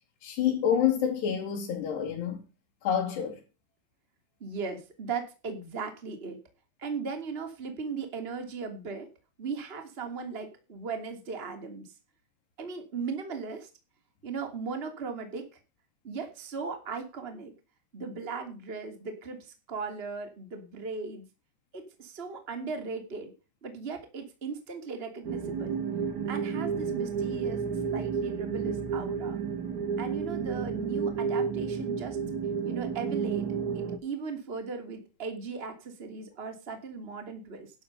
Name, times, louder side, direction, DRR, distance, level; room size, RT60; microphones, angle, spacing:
voice 1, 0.2-2.4 2.8-3.4, left 9 dB, 70° left, 4.4 m, -27 dB
voice 2, 4.4-6.4 6.8-9.1 9.4-11.9 12.6-13.7 14.2-15.5 16.0-17.5 17.9-21.2 21.7-23.3 23.6-25.8 26.3-27.6 27.9-29.4 30.0-32.2 32.6-33.5 33.7-37.7, right 5 dB, 20° right, 2.2 m, -37 dB
sound 1, 25.2-34.0, right 6 dB, 55° right, 2.4 m, -31 dB
12.0 x 8.0 x 5.5 m
omnidirectional pair, 5.0 m